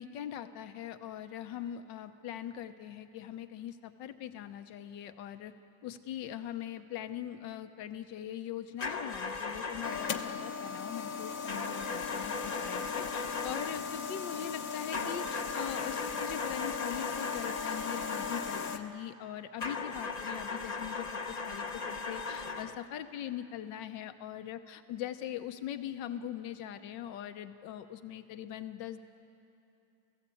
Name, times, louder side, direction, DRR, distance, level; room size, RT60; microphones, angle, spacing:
voice 1, 0.0-5.5 5.8-29.0, left 10 dB, 75° left, 10 dB, 1.5 m, -41 dB
sound 1, 8.8-10.4 11.5-13.9 14.9-18.9 19.6-22.8, left 4 dB, 40° left, 0.6 m, -38 dB
sound 2, 9.8-18.8, left 6 dB, 55° left, 1.1 m, -38 dB
29.0 x 16.0 x 8.4 m, 2.8 s
omnidirectional pair, 2.0 m